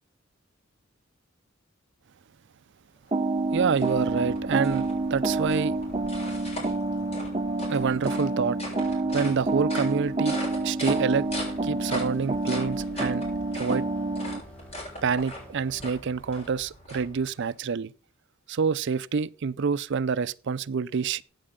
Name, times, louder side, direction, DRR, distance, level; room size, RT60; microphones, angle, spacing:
sound 1, 3.1-17.6, left 1 dB, 30° left, 7.1 m, -40 dB
sound 2, 3.1-14.4, right 2 dB, 30° right, 0.9 m, -28 dB
voice 1, 3.5-5.8 7.7-8.6 9.1-11.3 11.6-13.2 13.5-13.8 15.0-17.9 18.5-21.2, right 5 dB, 60° right, 0.5 m, -27 dB
sound 3, 10.3-16.5, left 1 dB, 5° left, 3.2 m, -50 dB
15.5 x 8.5 x 3.7 m
head